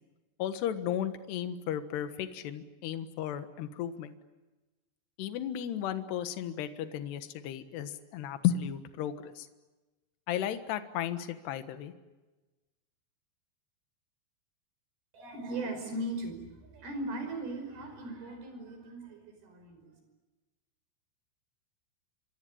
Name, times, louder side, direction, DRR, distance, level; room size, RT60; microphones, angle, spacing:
voice 1, 0.4-4.1 5.2-9.5 10.3-11.9, left 10 dB, 70° left, 9 dB, 3.3 m, -34 dB
voice 2, 15.1-19.9, right 1 dB, 55° right, 6 dB, 7.2 m, -38 dB
26.5 x 25.0 x 8.6 m, 1.2 s
omnidirectional pair, 5.5 m